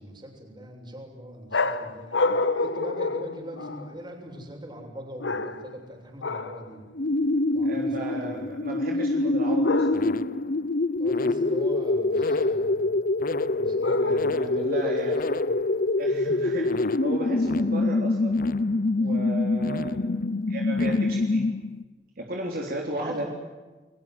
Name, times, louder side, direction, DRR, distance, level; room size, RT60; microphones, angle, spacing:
voice 1, 0.0-6.9 7.5-8.5 8.9-9.0 11.0-13.0 13.5-15.6 19.0-19.1 22.9-23.3, right 1 dB, 25° right, 3 dB, 7.0 m, -41 dB
sound 1, 1.5-4.0 5.2-5.8 6.2-6.7 9.6-10.3 13.8-14.6, left 3 dB, 85° left, 1.6 m, -28 dB
sound 2, 6.9-21.8, left 2 dB, 50° left, 0.8 m, -25 dB
voice 2, 7.6-9.9 14.0-15.2 16.0-18.4 18.9-20.0 20.5-21.5 22.2-23.3, right 1 dB, 55° right, 0 dB, 3.6 m, -34 dB
29.5 x 23.0 x 7.9 m, 1.3 s
head